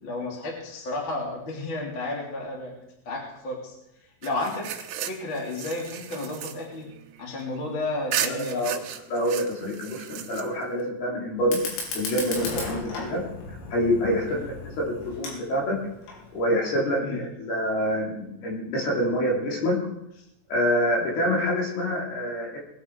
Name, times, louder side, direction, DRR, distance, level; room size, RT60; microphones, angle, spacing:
voice 1, 0.0-2.7 3.0-3.7 4.2-4.7 5.0-6.9 7.2-8.7 14.3-14.4 17.0-17.2, left 2 dB, 30° left, -2 dB, 3.1 m, -32 dB
sound 1, 4.2-7.6 8.1-10.8, right 10 dB, 75° right, 3.4 m, -35 dB
voice 2, 8.2-8.7 9.1-11.6 11.9-13.2 13.7-15.8 16.3-19.8 20.5-22.6, equal, 55° left, -2 dB, 4.7 m, -26 dB
Fire, 11.4-16.4, left 3 dB, 85° left, 5.9 m, -36 dB
21.0 x 10.0 x 4.8 m, 0.83 s
omnidirectional pair, 5.7 m